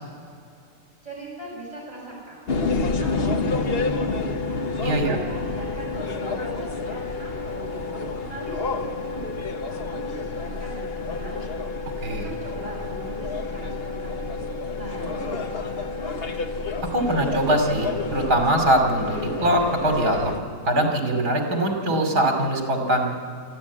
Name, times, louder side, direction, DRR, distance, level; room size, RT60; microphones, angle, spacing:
voice 1, 1.0-2.7 2.9-4.2 4.5-16.4, right 1 dB, 20° right, -5 dB, 7.7 m, -39 dB
sound 1, 2.5-20.4, left 3 dB, 45° left, 1.1 m, -29 dB
voice 2, 4.8-5.2 12.0-12.3 16.9-20.3 20.6-23.1, right 1 dB, 75° right, 2 dB, 3.2 m, -22 dB
24.5 x 14.0 x 8.4 m, 2.4 s
omnidirectional pair, 1.7 m